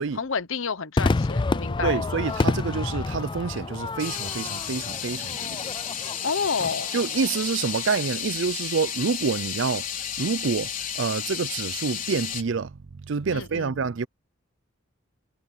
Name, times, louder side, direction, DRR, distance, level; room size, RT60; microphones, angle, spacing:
voice 1, 0.1-2.0 6.2-6.9 13.3-13.8, left 5 dB, 75° left, 1.0 m, -29 dB
Crowd / Fireworks, 1.0-7.5, left 3 dB, 25° left, 0.3 m, -29 dB
sound 1, 1.4-1.7 2.3-2.5 3.5-3.6 4.0-12.4, left 8 dB, 40° left, 4.1 m, -32 dB
voice 2, 1.8-5.6 6.9-9.9 10.2-14.1, right 5 dB, 65° right, 0.5 m, -27 dB
head